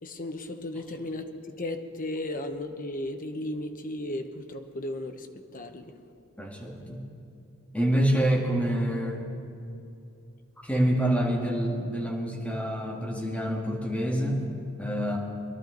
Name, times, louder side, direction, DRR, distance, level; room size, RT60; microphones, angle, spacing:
voice 1, 0.0-5.9, left 1 dB, 40° left, 6 dB, 0.9 m, -35 dB
voice 2, 6.4-7.0 7.7-9.2 10.6-14.4 14.8-15.2, right 1 dB, 5° left, -2 dB, 2.0 m, -27 dB
22.5 x 12.0 x 3.9 m, 2.8 s
head